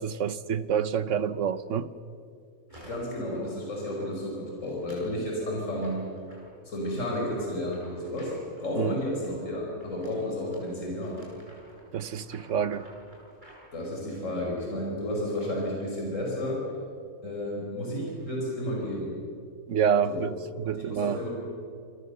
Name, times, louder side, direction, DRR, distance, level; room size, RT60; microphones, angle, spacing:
voice 1, 0.0-1.9 8.7-9.0 11.9-12.9 19.7-21.2, right 7 dB, 65° right, 1.2 m, -28 dB
voice 2, 2.7-6.0 6.7-11.2 13.7-16.6 17.2-19.1 20.0-20.3 20.8-21.3, left 1 dB, 60° left, 5.6 m, -32 dB
sound 1, 2.7-3.3 3.6-4.0 4.6-5.1 5.8-6.9 7.6-8.8 9.8-13.7, equal, 35° right, 7.8 m, -53 dB
29.0 x 24.0 x 6.8 m
omnidirectional pair, 1.5 m